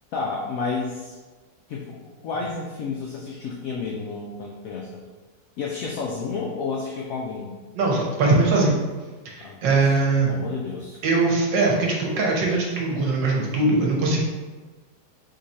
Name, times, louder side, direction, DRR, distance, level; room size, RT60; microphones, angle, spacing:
voice 1, 0.1-1.1 1.7-5.0 5.6-7.6 9.4-11.0, left 4 dB, 70° left, -2 dB, 0.8 m, -31 dB
voice 2, 7.7-8.7 9.2-10.3 11.0-14.2, right 3 dB, 85° right, -1 dB, 1.6 m, -21 dB
3.9 x 3.1 x 4.0 m, 1.3 s
omnidirectional pair, 1.9 m